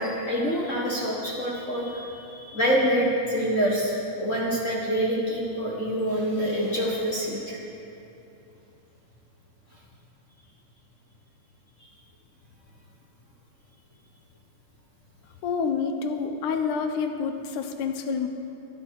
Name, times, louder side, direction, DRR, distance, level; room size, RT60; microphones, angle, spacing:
voice 1, 0.0-7.6 11.8-11.9, equal, 45° left, -4 dB, 1.0 m, -26 dB
voice 2, 15.4-18.3, left 5 dB, 75° left, 6 dB, 2.3 m, -28 dB
23.5 x 8.6 x 4.7 m, 2.8 s
omnidirectional pair, 3.7 m